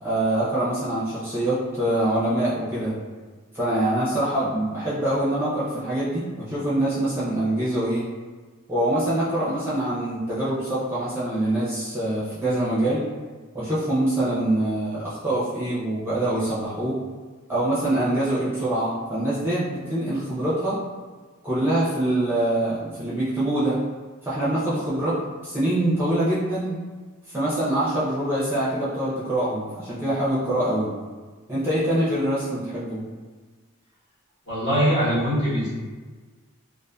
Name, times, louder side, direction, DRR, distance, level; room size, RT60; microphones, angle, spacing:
voice 1, 0.0-3.0 3.5-8.1 8.7-13.1 13.5-17.0 17.5-20.8 21.4-23.8 24.2-26.8 27.3-30.9 31.5-33.0, right 1 dB, 10° right, -10 dB, 0.5 m, -24 dB
voice 2, 34.5-35.7, equal, 50° left, -10 dB, 1.1 m, -22 dB
2.5 x 2.4 x 2.2 m, 1.4 s
head